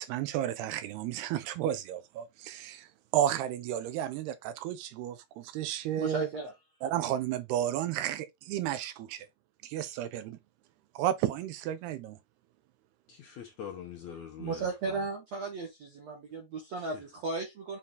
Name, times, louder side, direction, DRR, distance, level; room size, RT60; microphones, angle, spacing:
voice 1, 0.0-2.9 3.1-6.3 6.8-9.3 9.6-10.2 11.0-12.2, right 11 dB, 80° right, 2.9 m, -32 dB
voice 2, 6.0-6.9 14.4-17.8, right 3 dB, 55° right, 2.2 m, -35 dB
voice 3, 13.1-15.0 16.8-16.9, left 8 dB, 75° left, 1.7 m, -44 dB
7.3 x 4.1 x 4.0 m
omnidirectional pair, 4.7 m